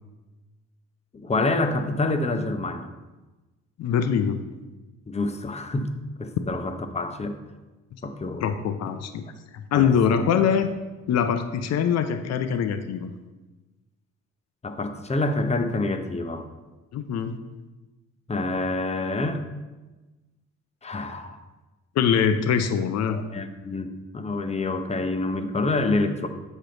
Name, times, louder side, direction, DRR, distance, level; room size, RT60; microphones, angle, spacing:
voice 1, 1.1-2.9 5.1-5.9 6.2-7.4 8.0-8.4 9.7-10.2 14.6-16.5 18.3-19.5 20.8-21.4 23.1-26.3, left 2 dB, 20° left, 8 dB, 0.7 m, -27 dB
voice 2, 3.8-4.4 8.4-9.2 9.5-10.7 11.1-13.1 16.9-17.4 22.0-23.2, left 7 dB, 60° left, 9 dB, 0.6 m, -23 dB
7.4 x 5.0 x 3.9 m, 1.2 s
cardioid pair, 90°, 30 cm